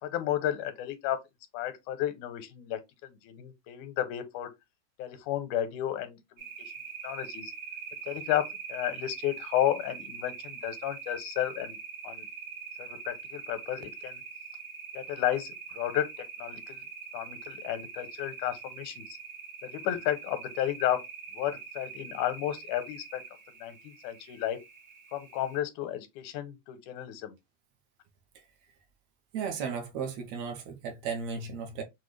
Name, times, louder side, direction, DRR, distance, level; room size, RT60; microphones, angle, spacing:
voice 1, 0.0-1.2 1.5-4.5 5.0-6.7 7.0-7.5 8.1-11.8 12.0-12.3 12.8-14.2 14.9-16.1 16.4-16.8 17.1-19.2 19.6-21.0 21.3-23.2 23.6-24.6 25.1-27.3, left 12 dB, 85° left, 2.1 m, -32 dB
sound 1, 6.4-25.6, right 5 dB, 85° right, 0.8 m, -43 dB
voice 2, 29.3-31.8, right 6 dB, 70° right, 1.9 m, -35 dB
6.3 x 2.2 x 3.1 m
omnidirectional pair, 3.4 m